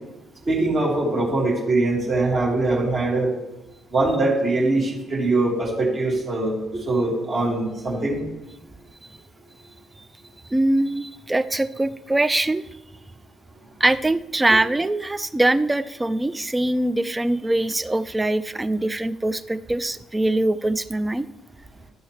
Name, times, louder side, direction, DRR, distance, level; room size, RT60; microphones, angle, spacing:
voice 1, 0.5-3.3 3.9-8.2, right 2 dB, 45° right, -4 dB, 2.7 m, -22 dB
voice 2, 10.5-12.6 13.8-21.3, right 1 dB, 15° right, 13 dB, 0.5 m, -22 dB
12.0 x 6.2 x 3.4 m, 0.96 s
figure-of-eight pair, 45°, 0 cm